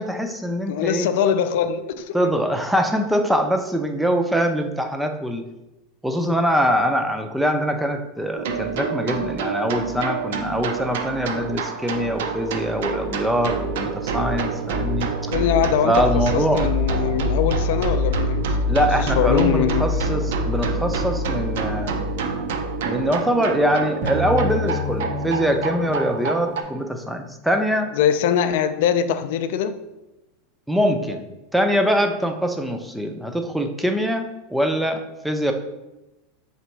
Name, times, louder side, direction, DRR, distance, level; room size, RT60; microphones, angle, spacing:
voice 1, 0.0-1.1 2.1-5.4 6.0-15.1 15.8-16.6 18.7-22.1 22.9-27.9 30.7-31.3 31.5-35.5, equal, 5° right, 0.4 m, -23 dB
voice 2, 0.7-2.2 15.3-18.6 19.0-19.9 27.9-29.8, left 8 dB, 70° left, 0.3 m, -22 dB
sound 1, 8.3-26.6, right 1 dB, 75° right, 0.5 m, -26 dB
sound 2, 24.0-27.1, left 3 dB, 40° right, 0.7 m, -30 dB
3.5 x 3.0 x 4.4 m
supercardioid pair, 140°, 0 cm